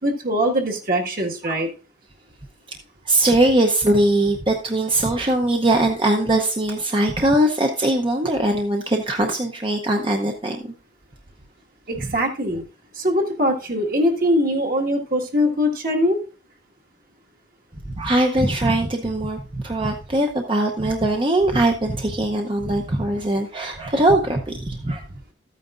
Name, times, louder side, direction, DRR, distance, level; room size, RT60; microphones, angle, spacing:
voice 1, 0.0-1.7 11.9-12.6 12.9-16.2, equal, 50° right, 2 dB, 1.8 m, -22 dB
voice 2, 3.0-10.7 18.0-25.0, right 1 dB, 25° right, 3 dB, 0.8 m, -21 dB
13.0 x 9.2 x 2.5 m, 0.36 s
head